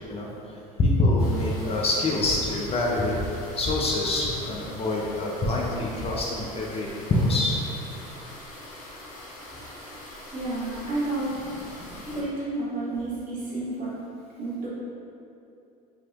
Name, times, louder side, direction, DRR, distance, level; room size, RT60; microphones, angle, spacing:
voice 1, 0.8-7.6 11.7-11.8, left 2 dB, 30° left, -3 dB, 0.5 m, -25 dB
sound 1, 1.2-12.2, left 1 dB, 65° left, 0.8 m, -43 dB
voice 2, 10.3-11.3 12.0-13.9 14.4-14.7, right 2 dB, 45° right, -8 dB, 1.2 m, -30 dB
3.2 x 2.8 x 2.3 m, 2.7 s
hypercardioid pair, 80°, 20 cm